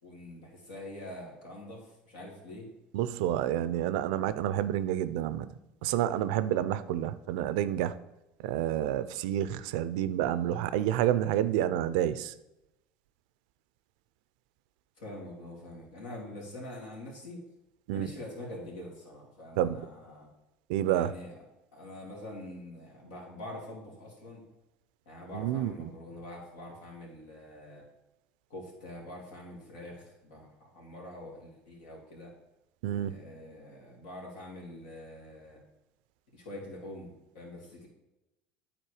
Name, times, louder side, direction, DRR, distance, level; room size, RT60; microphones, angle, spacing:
voice 1, 0.0-2.7 15.0-17.4 17.9-20.3 20.9-21.4 21.7-24.4 25.1-27.8 28.5-32.3 33.0-35.6 36.3-37.9, left 1 dB, 85° left, -2 dB, 2.6 m, -45 dB
voice 2, 2.9-5.5 5.8-8.0 8.4-12.3 17.9-18.1 19.6-19.8 20.7-21.1 25.3-25.7 32.8-33.1, right 12 dB, 80° right, 14 dB, 0.4 m, -29 dB
9.1 x 4.2 x 4.8 m, 0.94 s
supercardioid pair, 90°, 4 cm